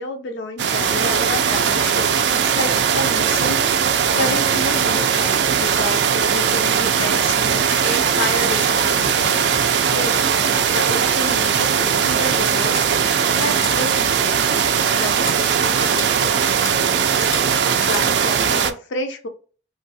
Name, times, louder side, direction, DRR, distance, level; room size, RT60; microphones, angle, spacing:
voice 1, 0.0-3.8 4.1-9.1 9.9-10.3 10.7-14.4 14.9-16.5 17.8-19.3, left 2 dB, 85° left, 6 dB, 0.5 m, -30 dB
sound 1, 0.6-18.7, right 7 dB, 70° right, 0.3 m, -19 dB
sound 2, 12.7-12.8 13.3-13.7 14.0-14.2 14.5-14.6 15.1-15.4 15.8-16.1 16.5-16.7 17.1-17.4 17.8-18.0, left 3 dB, 20° left, 0.5 m, -33 dB
3.1 x 2.2 x 2.7 m, 0.37 s
head